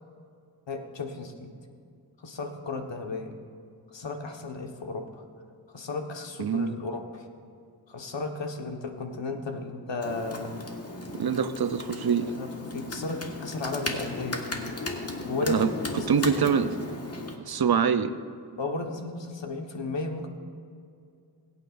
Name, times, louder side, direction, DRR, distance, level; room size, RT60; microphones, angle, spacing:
voice 1, 0.7-1.5 2.2-3.3 3.9-5.2 5.7-7.3 7.9-10.6 12.2-14.4 15.2-15.6 16.0-16.5 18.6-20.3, left 3 dB, 70° left, 3 dB, 1.4 m, -34 dB
voice 2, 6.4-6.8 11.2-12.3 15.5-15.7 16.1-16.7 17.5-18.1, right 7 dB, 55° right, 11 dB, 0.6 m, -24 dB
Computer keyboard, 10.0-17.4, left 2 dB, 30° left, 1.6 m, -36 dB
21.5 x 8.9 x 2.5 m, 2.4 s
cardioid pair, 50°, 45 cm